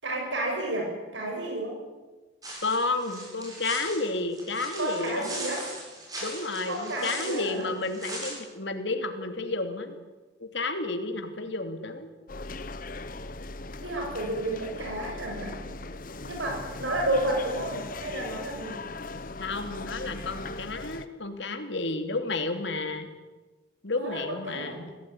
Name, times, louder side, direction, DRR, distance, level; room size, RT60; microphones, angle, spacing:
voice 1, 0.0-1.8 4.8-5.7 6.7-7.7 13.8-15.6 16.2-18.8 23.9-24.8, right 1 dB, 75° right, 1 dB, 7.1 m, -31 dB
sound 1, 2.4-8.3, right 1 dB, 20° right, 7.9 m, -39 dB
voice 2, 2.6-5.3 6.2-10.0 10.4-12.1 19.4-23.1 23.8-24.9, left 3 dB, 65° left, 6 dB, 3.0 m, -31 dB
sound 2, 12.3-21.1, left 2 dB, 45° left, 1.2 m, -39 dB
25.0 x 17.0 x 10.0 m, 1.2 s
head